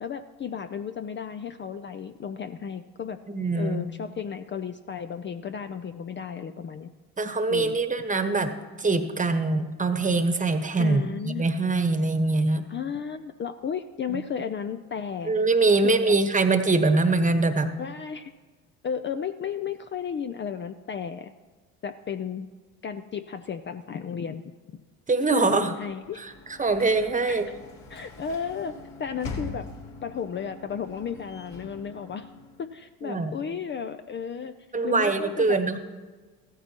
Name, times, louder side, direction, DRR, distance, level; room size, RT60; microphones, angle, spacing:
voice 1, 0.0-3.2 3.5-6.9 7.5-7.8 10.8-11.4 12.7-15.3 15.8-16.1 17.8-18.3 18.8-21.3 21.8-22.5 22.8-24.4 25.4-26.3 27.3-27.4 27.9-29.7 30.0-32.3 32.6-34.5 34.8-35.6, left 7 dB, 30° left, 9 dB, 0.5 m, -34 dB
voice 2, 3.3-3.8 7.2-12.6 14.1-14.2 15.2-17.7 25.1-25.7 26.2-26.3 26.6-27.5 33.0-33.3 34.7-35.8, right 3 dB, 20° right, 8 dB, 1.2 m, -23 dB
Sliding door / Slam, 25.8-32.8, left 3 dB, 60° left, 2.3 m, -43 dB
14.5 x 14.0 x 2.9 m, 1.3 s
supercardioid pair, 80°, 38 cm